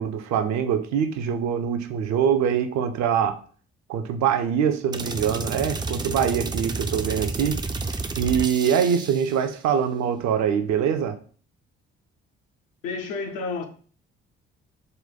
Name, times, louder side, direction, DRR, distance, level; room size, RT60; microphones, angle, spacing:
voice 1, 0.0-3.4 3.9-7.6 8.2-11.2, right 8 dB, 55° right, 0.6 m, -24 dB
sound 1, 4.9-9.4, right 3 dB, 15° right, 0.4 m, -30 dB
voice 2, 12.8-13.6, left 4 dB, 70° left, 0.7 m, -30 dB
3.9 x 2.2 x 4.1 m
hypercardioid pair, 45°, 32 cm